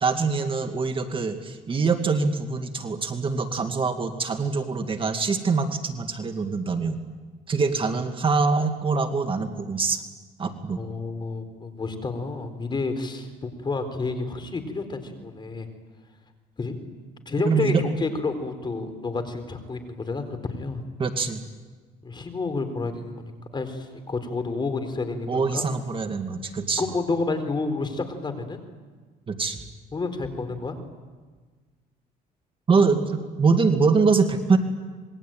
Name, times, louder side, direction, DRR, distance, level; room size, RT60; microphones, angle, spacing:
voice 1, 0.0-7.0 7.5-10.0 10.4-10.8 17.5-17.8 21.0-21.4 25.3-26.8 29.3-29.6 32.7-34.6, right 4 dB, 30° right, 6 dB, 2.1 m, -24 dB
voice 2, 10.8-15.7 16.6-16.8 17.3-20.8 22.0-23.2 23.5-25.7 26.8-28.6 29.9-30.8, left 3 dB, 25° left, 8 dB, 4.2 m, -30 dB
26.5 x 21.5 x 9.2 m, 1.4 s
cardioid pair, 110°, 17 cm